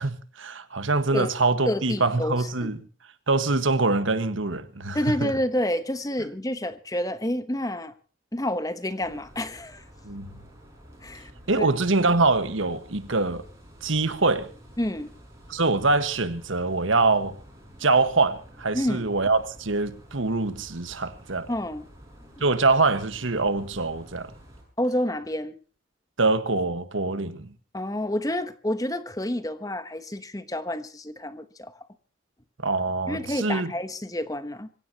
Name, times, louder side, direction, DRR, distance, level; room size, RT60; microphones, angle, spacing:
voice 1, 0.0-2.8 3.3-5.3 10.0-10.4 11.5-13.4 13.8-14.5 15.5-17.4 17.8-21.5 22.4-24.3 26.2-27.5 32.6-33.7, right 3 dB, 75° right, 1.5 m, -24 dB
voice 2, 1.7-2.7 4.9-7.9 8.3-9.8 11.0-11.3 11.6-11.7 14.8-15.1 18.7-19.1 21.5-21.9 24.8-25.6 27.7-31.9 33.1-34.7, left 1 dB, 15° left, 1.0 m, -29 dB
sound 1, 9.0-24.6, equal, 15° right, 6.8 m, -49 dB
25.5 x 16.5 x 2.9 m
head